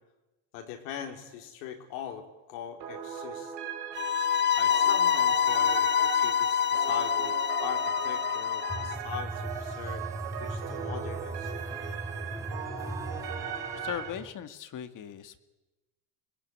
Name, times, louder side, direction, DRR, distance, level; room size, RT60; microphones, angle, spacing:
voice 1, 0.5-3.5 4.6-10.1 10.4-11.5, left 8 dB, 85° left, 3 dB, 4.0 m, -41 dB
sound 1, 2.8-14.1, right 8 dB, 65° right, 5.3 m, -38 dB
sound 2, 4.0-8.9, left 8 dB, 25° left, 0.9 m, -26 dB
sound 3, 8.7-14.3, right 1 dB, 5° right, 3.1 m, -38 dB
voice 2, 13.8-15.4, left 9 dB, 45° left, 10 dB, 2.0 m, -38 dB
25.0 x 20.5 x 9.5 m, 1.1 s
supercardioid pair, 110°, 45 cm